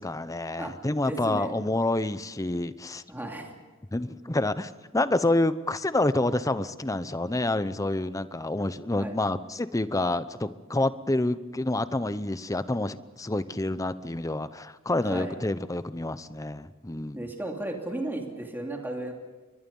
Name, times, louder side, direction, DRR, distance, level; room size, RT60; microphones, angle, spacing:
voice 1, 0.0-3.0 3.9-17.2, left 2 dB, 15° left, 14 dB, 0.7 m, -28 dB
voice 2, 1.0-1.5 3.1-3.5 9.0-9.2 15.0-15.4 17.1-19.1, right 1 dB, 10° right, 1 dB, 2.9 m, -34 dB
29.5 x 23.0 x 5.5 m, 1.2 s
head